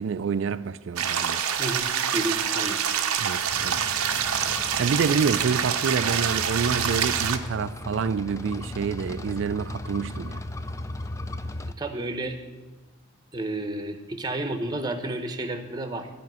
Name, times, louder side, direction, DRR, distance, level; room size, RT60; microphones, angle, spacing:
voice 1, 0.0-1.4 3.2-3.8 4.8-10.4, right 6 dB, 60° right, 0.3 m, -27 dB
sound 1, 1.0-7.4, right 8 dB, 90° right, 0.8 m, -26 dB
voice 2, 1.6-2.8 11.8-12.4 13.3-16.1, right 2 dB, 20° right, 0.8 m, -31 dB
sound 2, 3.5-11.7, left 2 dB, 15° left, 0.3 m, -36 dB
13.5 x 5.2 x 9.1 m
head